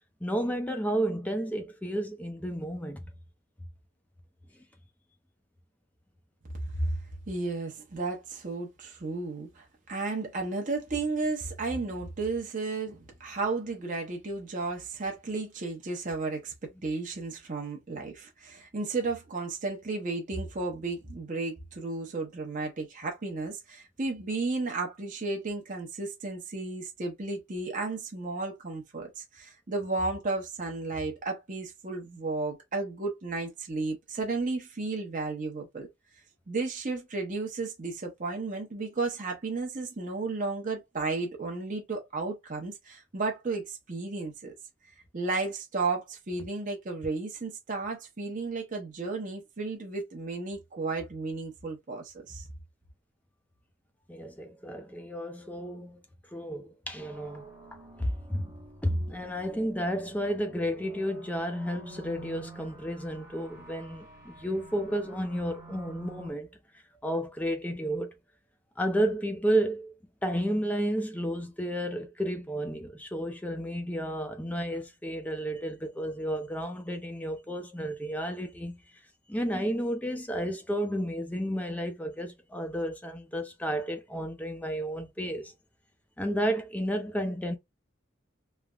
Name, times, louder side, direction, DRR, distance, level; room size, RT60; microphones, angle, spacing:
voice 1, 0.2-3.0 54.1-56.0 56.3-57.5 58.0-58.5 58.8-66.5 67.0-68.1 68.8-69.9 70.2-78.8 79.3-85.5 86.2-87.6, equal, 10° left, 0.5 m, -32 dB
voice 2, 6.5-35.9 36.5-44.5 45.1-52.5, right 3 dB, 40° right, 0.8 m, -33 dB
sound 1, 57.0-66.3, right 2 dB, 15° right, 1.0 m, -50 dB
3.2 x 2.1 x 2.4 m
head